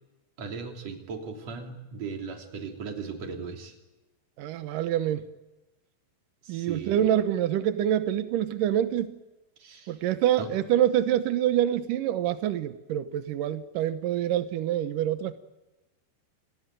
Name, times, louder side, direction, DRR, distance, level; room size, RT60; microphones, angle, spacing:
voice 1, 0.4-3.8 6.4-7.1 9.6-10.0 10.4-10.5, right 5 dB, 40° right, 3.8 m, -37 dB
voice 2, 4.4-5.3 6.5-9.2 9.9-15.3, right 11 dB, 90° right, 1.8 m, -26 dB
29.0 x 19.5 x 9.2 m
omnidirectional pair, 5.4 m